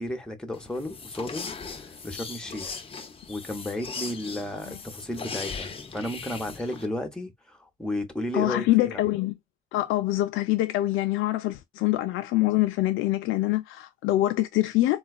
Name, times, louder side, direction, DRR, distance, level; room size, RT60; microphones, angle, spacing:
voice 1, 0.0-2.8 3.3-9.0, left 1 dB, 5° left, 0.9 m, -33 dB
sound 1, 0.5-6.9, left 5 dB, 30° left, 0.7 m, -38 dB
voice 2, 8.3-9.3 9.7-15.0, left 16 dB, 90° left, 0.4 m, -25 dB
3.9 x 2.3 x 2.3 m
cardioid pair, 90°, 20 cm